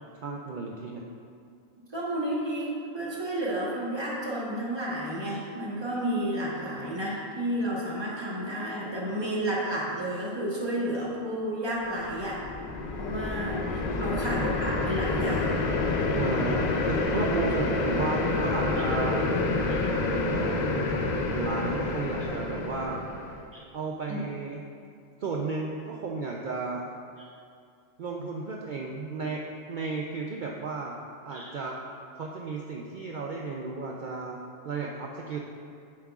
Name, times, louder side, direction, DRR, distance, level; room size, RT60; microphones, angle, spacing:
voice 1, 0.1-1.0 14.0-14.5 16.1-19.2 19.9-23.0 23.7-24.6 25.2-26.9 28.0-29.4 29.7-31.0 31.3-31.8 32.1-34.4 34.6-35.4, right 4 dB, 85° right, -1 dB, 0.4 m, -33 dB
voice 2, 1.9-12.4 13.0-15.5 22.2-22.3 23.5-23.6 24.1-24.2 31.3-31.5, right 1 dB, 20° right, -5 dB, 1.1 m, -31 dB
sound 1, 12.0-23.4, left 3 dB, 75° left, 0.4 m, -28 dB
7.6 x 7.3 x 2.4 m, 2.3 s
omnidirectional pair, 1.4 m